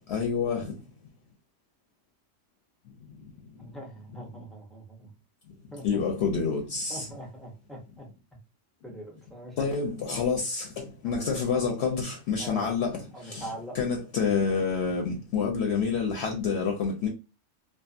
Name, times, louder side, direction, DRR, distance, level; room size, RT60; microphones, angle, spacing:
voice 1, 0.1-0.7 5.8-7.1 9.6-13.5 13.7-17.1, left 5 dB, 65° left, 0.8 m, -28 dB
voice 2, 3.6-5.1 5.7-6.0 6.9-8.1 8.8-9.6 11.0-11.2 11.5-11.6 12.4-12.8 13.1-13.8, right 1 dB, ahead, 0.4 m, -43 dB
2.6 x 2.3 x 2.4 m
omnidirectional pair, 1.3 m